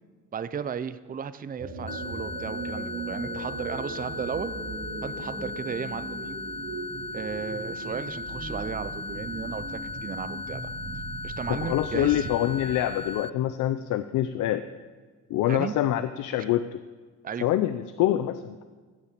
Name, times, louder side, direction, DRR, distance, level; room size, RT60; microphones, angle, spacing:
voice 1, 0.3-4.5 5.0-6.4 7.1-10.7 11.2-12.3 15.5-15.7 17.2-17.5, right 7 dB, 30° right, 13 dB, 0.6 m, -35 dB
sound 1, 1.6-13.1, right 3 dB, 90° right, 4.0 m, -39 dB
sound 2, 1.9-13.3, left 3 dB, 20° left, 0.3 m, -37 dB
voice 2, 11.5-14.6 15.3-16.8 17.4-18.6, left 12 dB, 85° left, 11 dB, 0.6 m, -25 dB
15.0 x 7.1 x 8.3 m, 1.5 s
cardioid pair, 90°, 30 cm